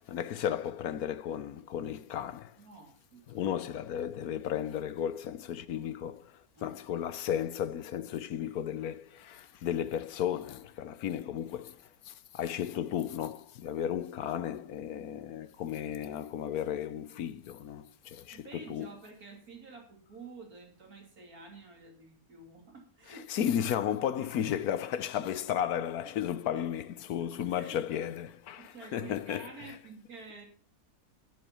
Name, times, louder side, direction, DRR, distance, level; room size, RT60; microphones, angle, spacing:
voice 1, 0.0-2.6 3.3-18.9 23.1-29.7, left 9 dB, 90° left, 1.3 m, -34 dB
voice 2, 2.6-3.6 6.6-6.8 18.3-23.5 24.4-24.6 26.5-26.7 27.2-27.8 28.6-30.4, right 4 dB, 85° right, 3.4 m, -50 dB
11.0 x 10.0 x 5.5 m
omnidirectional pair, 1.5 m